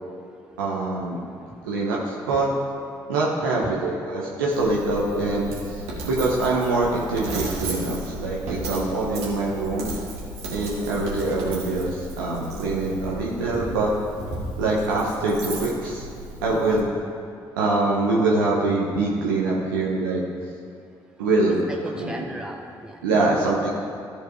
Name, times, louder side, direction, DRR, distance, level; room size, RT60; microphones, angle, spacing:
voice 1, 0.6-1.2 1.6-2.5 3.1-9.9 10.5-13.9 14.6-16.0 16.4-16.9 17.6-20.2 21.2-21.6 22.0-22.3 23.0-23.7, right 2 dB, 90° right, -4 dB, 1.0 m, -24 dB
Coin (dropping), 4.5-16.8, right 1 dB, 70° right, 1.9 m, -34 dB
voice 2, 16.5-16.9 21.5-23.7, right 1 dB, 5° right, 1 dB, 1.0 m, -37 dB
13.0 x 5.0 x 4.5 m, 2.6 s
hypercardioid pair, 45°, 11 cm